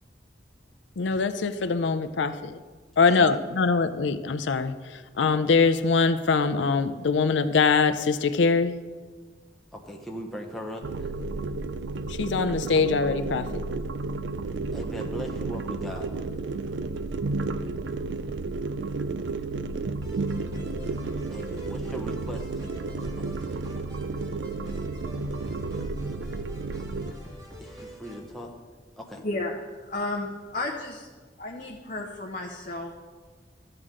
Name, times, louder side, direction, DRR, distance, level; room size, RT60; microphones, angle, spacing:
voice 1, 1.0-2.6 3.0-8.8 12.1-13.5, left 4 dB, 90° left, 0.5 m, -23 dB
voice 2, 3.1-3.4 9.7-11.1 14.7-16.1 21.3-23.4 26.9-27.0 27.6-28.5 29.0-29.2, equal, ahead, 0.9 m, -39 dB
sound 1, 10.8-27.1, right 3 dB, 80° right, 0.4 m, -32 dB
sound 2, 20.0-28.3, equal, 20° right, 1.5 m, -46 dB
voice 3, 29.2-31.1 31.4-32.9, left 2 dB, 45° left, 0.8 m, -33 dB
13.0 x 7.7 x 3.7 m
head